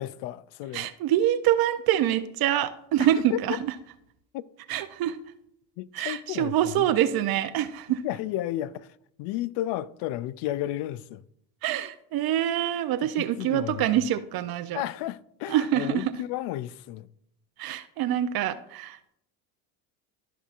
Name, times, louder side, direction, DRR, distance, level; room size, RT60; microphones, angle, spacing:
voice 1, 0.0-0.9 3.3-3.4 4.3-4.4 5.8-6.9 8.0-8.9 9.2-11.2 13.0-14.0 14.7-17.1, left 14 dB, 65° left, 0.5 m, -33 dB
voice 2, 0.7-3.7 4.7-5.2 5.9-8.0 11.6-14.8 15.5-16.2 17.6-19.1, right 12 dB, 50° right, 0.6 m, -25 dB
13.0 x 5.5 x 2.4 m
supercardioid pair, 75°, 46 cm